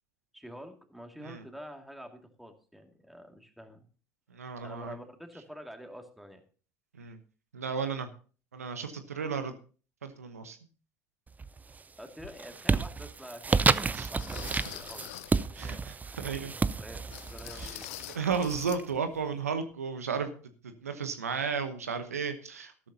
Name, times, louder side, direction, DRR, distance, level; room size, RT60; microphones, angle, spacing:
voice 1, 0.3-3.9 4.6-6.4 12.0-15.1 15.4-15.9 16.8-17.9, equal, ahead, 4 dB, 2.3 m, -47 dB
voice 2, 4.3-5.0 6.9-7.2 7.5-8.1 8.5-9.5 10.0-10.6 13.9-14.1 15.5-16.5 17.5-17.8 18.1-20.4 20.8-22.7, right 6 dB, 85° right, 9 dB, 1.0 m, -34 dB
sound 1, 11.3-11.8 12.2-18.8, right 4 dB, 20° right, 0.5 m, -31 dB
sound 2, 12.2-12.4 13.0-13.1 14.2-15.4 17.1-18.8 19.1-19.3 19.7-19.8, left 17 dB, 70° left, 0.5 m, -44 dB
13.0 x 12.5 x 2.8 m, 0.38 s
figure-of-eight pair, 65°, 8 cm